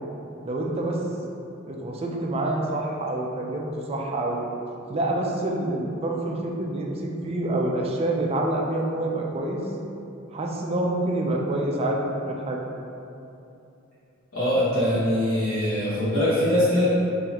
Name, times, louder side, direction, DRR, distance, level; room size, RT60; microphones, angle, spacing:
voice 1, 0.4-1.0 1.7-4.5 4.9-9.6 10.3-12.6, right 1 dB, 30° right, -1 dB, 0.4 m, -27 dB
voice 2, 14.3-16.9, left 1 dB, 90° left, -14 dB, 1.4 m, -22 dB
4.0 x 3.1 x 2.9 m, 2.8 s
head